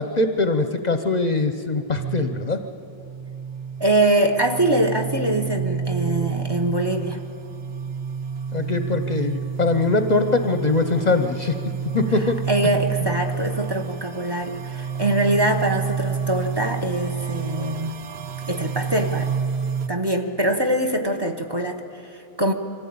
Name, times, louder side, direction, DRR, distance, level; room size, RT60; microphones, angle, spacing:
voice 1, 0.0-2.6 8.5-11.6 11.9-12.4, left 3 dB, 45° left, 8 dB, 0.8 m, -22 dB
sound 1, 1.9-19.9, right 6 dB, 75° right, 1.0 m, -29 dB
voice 2, 3.8-7.2 12.5-17.9 18.4-19.3 19.9-22.5, right 1 dB, 25° right, 5 dB, 1.1 m, -23 dB
24.0 x 15.0 x 8.6 m, 2.8 s
omnidirectional pair, 1.1 m